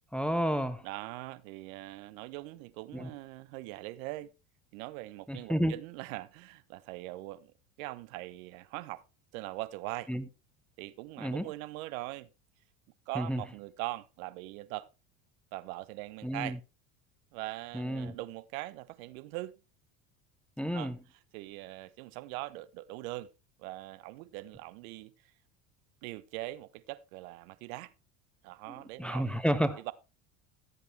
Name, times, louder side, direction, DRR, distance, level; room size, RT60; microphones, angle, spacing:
voice 1, 0.1-0.9 2.9-3.1 5.3-5.8 10.1-10.2 11.2-11.5 13.1-13.4 16.2-16.6 17.7-18.1 20.6-21.0 29.0-29.8, equal, ahead, 1.1 m, -31 dB
voice 2, 0.8-4.3 4.7-9.0 9.3-10.1 10.8-12.3 13.1-14.9 15.5-16.6 17.3-19.6 20.7-20.9 21.3-23.3 23.6-25.1 26.0-27.9 28.4-29.4 29.8-29.9, right 19 dB, 70° right, 1.0 m, -41 dB
15.0 x 8.0 x 3.3 m
hypercardioid pair, 85°, 43 cm